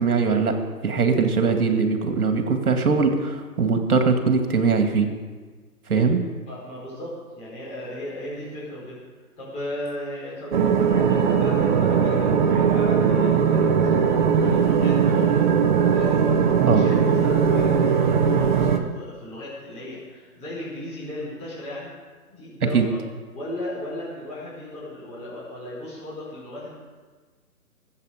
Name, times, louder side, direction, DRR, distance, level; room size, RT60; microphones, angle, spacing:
voice 1, 0.0-5.1 5.9-6.2 16.6-16.8 22.7-22.9, right 5 dB, 70° right, 5 dB, 2.3 m, -21 dB
voice 2, 6.5-9.0 9.4-15.5 15.9-21.9 22.3-23.0 23.3-26.7, left 1 dB, 15° left, -8 dB, 4.7 m, -35 dB
sound 1, 10.5-18.8, right 7 dB, 30° right, 0.9 m, -19 dB
21.0 x 8.5 x 5.1 m, 1.4 s
hypercardioid pair, 145°, 45 cm